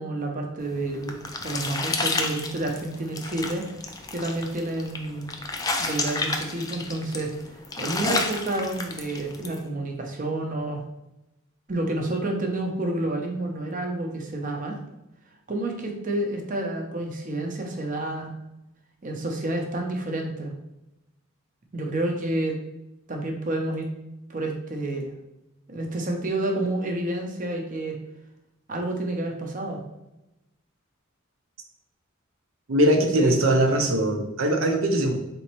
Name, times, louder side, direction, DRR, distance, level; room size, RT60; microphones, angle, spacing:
voice 1, 0.0-3.6 4.1-5.3 5.8-7.3 7.8-10.8 11.7-14.8 15.5-18.3 19.0-20.5 21.7-22.6 23.1-23.9 24.3-25.1 25.7-28.0 28.7-29.8 33.0-33.4, right 2 dB, 40° right, 2 dB, 0.7 m, -29 dB
sound 1, 0.7-9.6, left 3 dB, 20° left, 0.3 m, -31 dB
voice 2, 32.7-35.2, right 1 dB, 75° right, 5 dB, 0.7 m, -21 dB
4.1 x 3.4 x 3.0 m, 0.93 s
head